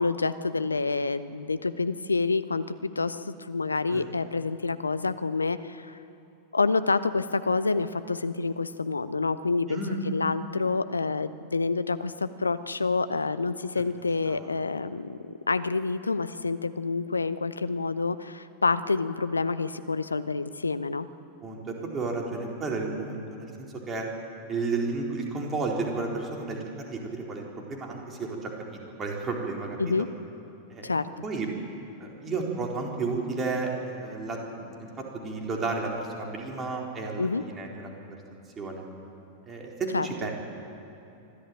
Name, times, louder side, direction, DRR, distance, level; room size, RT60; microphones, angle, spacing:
voice 1, 0.0-6.0 6.5-21.1 29.8-30.1 30.8-31.1 37.2-37.4 39.9-40.1, left 3 dB, 80° left, 13 dB, 0.8 m, -28 dB
voice 2, 9.7-10.0 14.3-14.5 21.4-24.1 24.5-29.8 30.7-30.9 31.2-31.5 32.0-38.2 38.6-38.8 39.5-40.3, right 3 dB, 25° right, 0 dB, 4.2 m, -32 dB
25.0 x 13.0 x 9.0 m, 2.9 s
figure-of-eight pair, 90°, 0 cm